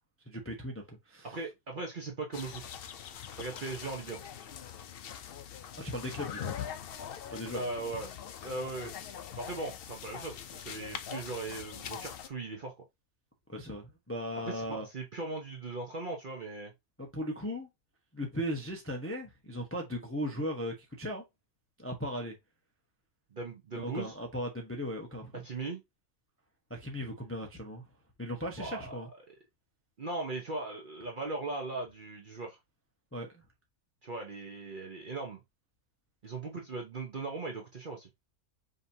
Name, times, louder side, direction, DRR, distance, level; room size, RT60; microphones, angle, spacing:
voice 1, 0.3-1.4 5.7-6.6 7.3-7.6 13.5-14.9 17.0-17.7 18.1-21.2 21.8-22.3 23.8-25.4 26.7-27.8 28.2-29.1 33.1-33.4, equal, 15° left, 0.5 m, -37 dB
voice 2, 1.2-2.8 3.4-4.2 7.5-8.1 8.4-8.9 9.4-12.7 14.4-16.7 23.3-24.1 25.4-25.8 28.6-29.0 30.0-32.6 34.0-35.4 36.2-38.1, right 3 dB, 45° right, 0.7 m, -38 dB
sound 1, 2.3-12.3, left 9 dB, 80° left, 0.5 m, -43 dB
5.1 x 2.9 x 2.6 m
omnidirectional pair, 1.6 m